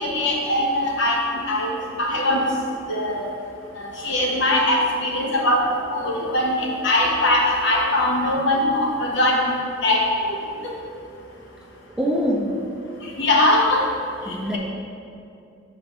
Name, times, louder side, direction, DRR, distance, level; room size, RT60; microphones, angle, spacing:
voice 1, 0.0-11.9 12.9-14.6, left 1 dB, 75° left, -2 dB, 1.1 m, -22 dB
voice 2, 12.0-12.7 14.3-14.6, equal, 5° right, -1 dB, 0.5 m, -24 dB
5.1 x 4.3 x 5.8 m, 2.5 s
head